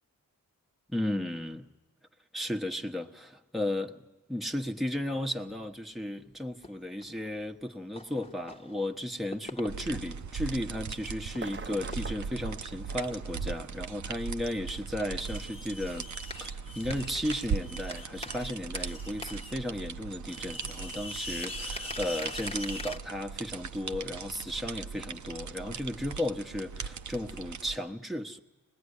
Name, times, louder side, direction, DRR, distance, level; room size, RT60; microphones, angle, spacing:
voice 1, 0.9-1.7 2.3-16.1 16.4-28.4, left 1 dB, ahead, 1.3 m, -34 dB
sound 1, 4.8-4.9 5.4-5.6 6.6-7.3 8.0-8.8 9.1-10.4 10.7-10.8 11.0-11.6 11.9-12.3 14.0-14.1 15.1-19.6 19.9-20.0 20.2-23.0, left 1 dB, 15° left, 1.4 m, -42 dB
sound 2, 9.7-27.8, right 6 dB, 60° right, 0.8 m, -39 dB
sound 3, 11.3-14.4 15.5-15.6, right 4 dB, 35° right, 0.8 m, -45 dB
25.0 x 20.0 x 9.9 m
cardioid pair, 70°, 34 cm